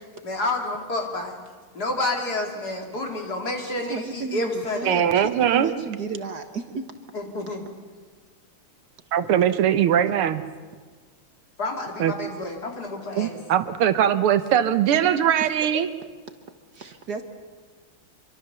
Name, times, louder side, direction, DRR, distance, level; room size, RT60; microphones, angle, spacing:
voice 1, 0.2-1.3 1.7-5.0 7.1-7.6 11.6-13.4, left 2 dB, 45° left, 2 dB, 3.2 m, -29 dB
voice 2, 3.6-6.9 15.4-15.5 15.7-15.8 16.7-17.2, right 5 dB, 55° right, 7 dB, 1.5 m, -33 dB
voice 3, 4.9-5.7 9.1-10.4 12.0-12.1 13.2-15.9, right 10 dB, 85° right, 11 dB, 1.9 m, -21 dB
25.5 x 24.0 x 6.9 m, 1.5 s
omnidirectional pair, 2.4 m